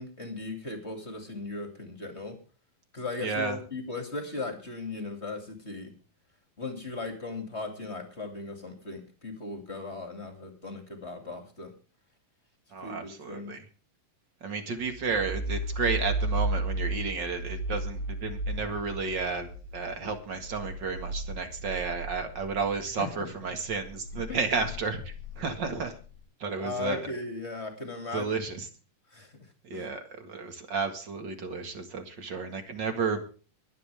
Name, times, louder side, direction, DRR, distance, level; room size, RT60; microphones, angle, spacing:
voice 1, 0.0-2.4 2.9-5.9 6.6-11.7 12.8-13.6 23.0-23.3 24.3-24.4 26.6-28.3 29.1-29.3 29.7-29.9, left 3 dB, 20° left, 5 dB, 2.3 m, -37 dB
voice 2, 3.2-3.6 12.7-13.7 14.4-26.0 26.4-27.1 28.1-28.7 29.6-33.3, right 4 dB, 40° right, 7 dB, 1.9 m, -32 dB
sound 1, 14.8-23.0 23.4-26.0, right 2 dB, 90° right, 6.8 m, -34 dB
23.5 x 9.5 x 3.5 m, 0.37 s
omnidirectional pair, 3.9 m